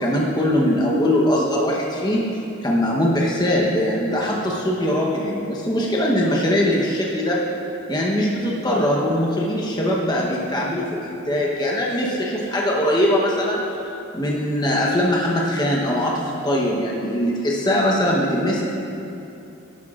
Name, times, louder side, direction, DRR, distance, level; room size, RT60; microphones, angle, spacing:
voice 1, 0.0-2.3 2.6-7.4 7.9-13.6 14.1-18.6, left 1 dB, 20° left, -3 dB, 0.9 m, -21 dB
12.5 x 11.5 x 2.4 m, 2.8 s
head